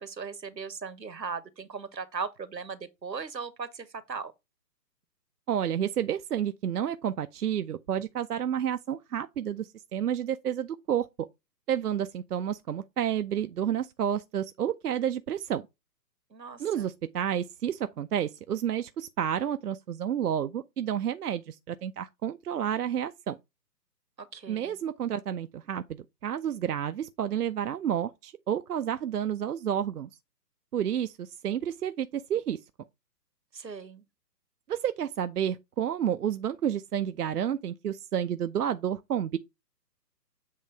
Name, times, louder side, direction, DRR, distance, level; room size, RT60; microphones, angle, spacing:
voice 1, 0.0-4.3 16.3-16.9 24.2-24.8 33.5-34.0, right 5 dB, 85° right, 1.2 m, -38 dB
voice 2, 5.5-11.1 11.7-15.6 16.6-23.4 24.5-30.1 30.7-32.6 34.7-39.4, right 9 dB, 65° right, 0.5 m, -30 dB
7.5 x 3.1 x 4.4 m
figure-of-eight pair, 135°, 50 cm